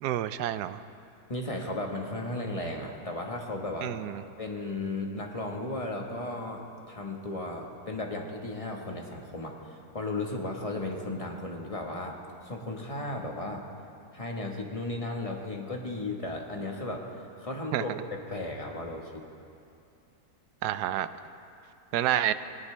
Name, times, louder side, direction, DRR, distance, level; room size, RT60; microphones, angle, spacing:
voice 1, 0.0-0.8 3.8-4.2 17.7-17.8 20.6-21.1 21.9-22.3, right 12 dB, 85° right, 13 dB, 1.1 m, -28 dB
voice 2, 1.3-3.9 4.4-13.7 14.1-19.2, left 2 dB, 25° left, 1 dB, 1.3 m, -35 dB
19.0 x 18.0 x 3.3 m, 2.5 s
omnidirectional pair, 1.7 m